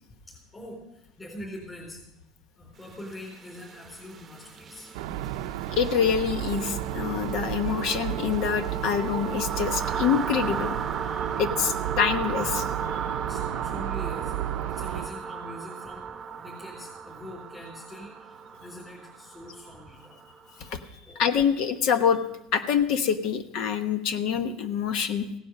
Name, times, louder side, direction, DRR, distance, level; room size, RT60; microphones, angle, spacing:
voice 1, 0.3-2.0 2.6-4.9 13.2-20.2 21.0-21.2, left 1 dB, 15° left, -5 dB, 3.9 m, -43 dB
sound 1, 2.9-20.7, right 6 dB, 25° right, 0.9 m, -36 dB
sound 2, 4.9-15.1, right 13 dB, 85° right, 0.7 m, -33 dB
voice 2, 5.7-10.7 11.4-12.7 20.6-20.8 21.1-22.2 22.5-25.3, left 7 dB, 55° left, 9 dB, 1.0 m, -26 dB
16.5 x 10.0 x 6.5 m, 0.86 s
cardioid pair, 155°, 0 cm